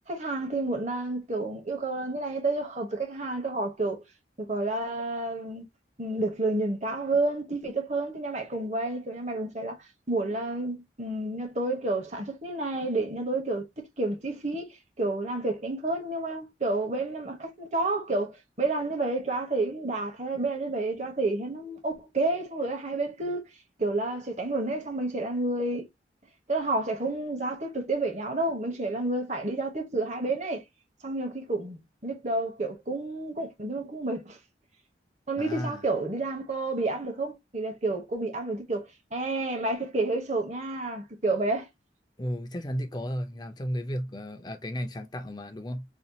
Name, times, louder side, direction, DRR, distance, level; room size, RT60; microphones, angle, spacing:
voice 1, 0.1-4.0 4.4-5.6 6.0-9.8 10.1-23.5 23.8-25.9 26.5-30.6 31.0-34.4 35.3-41.7, right 2 dB, 40° right, 1.1 m, -30 dB
voice 2, 35.4-35.8 42.2-45.8, equal, 25° left, 0.5 m, -34 dB
4.1 x 2.4 x 2.7 m
head